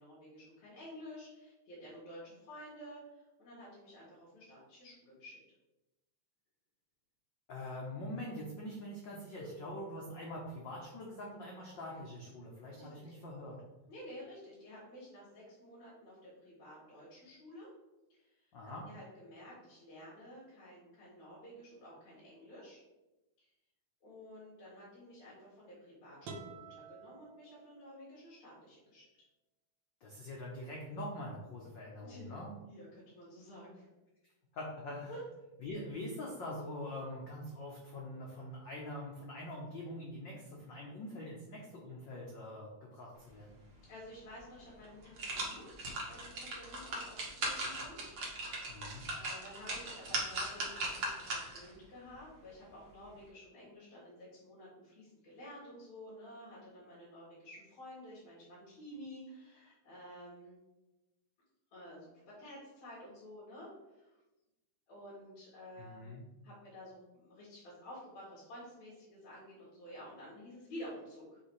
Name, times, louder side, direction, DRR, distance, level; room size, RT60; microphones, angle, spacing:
voice 1, 0.0-5.4 9.3-9.5 12.8-13.1 13.9-17.7 18.1-22.8 23.4-23.5 24.0-29.1 32.0-32.4 32.7-33.9 35.1-35.2 43.9-48.0 49.1-60.6 61.7-64.2 64.9-71.4, equal, 65° left, -10 dB, 3.2 m, -51 dB
voice 2, 7.5-13.6 18.5-18.9 30.0-32.5 34.5-35.1 35.6-43.6 48.7-49.1 65.8-66.2, left 1 dB, 85° left, -2 dB, 1.0 m, -44 dB
sound 1, 26.2-28.2, right 3 dB, 75° right, 1.1 m, -50 dB
sound 2, 44.3-44.4 44.8-51.7 52.1-52.2, right 2 dB, 45° right, 1.6 m, -39 dB
7.0 x 3.4 x 4.8 m, 1.0 s
omnidirectional pair, 3.4 m